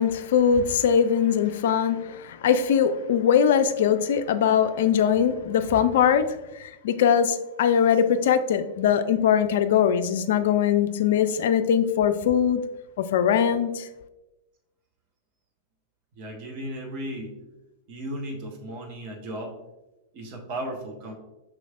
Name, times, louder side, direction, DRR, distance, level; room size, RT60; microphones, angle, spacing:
voice 1, 0.0-12.6 13.0-13.9, left 8 dB, 60° left, 0.3 m, -21 dB
voice 2, 16.2-17.3 17.9-19.6 20.1-21.1, right 1 dB, 45° right, 1.0 m, -35 dB
6.0 x 3.2 x 2.4 m
figure-of-eight pair, 95°, 0 cm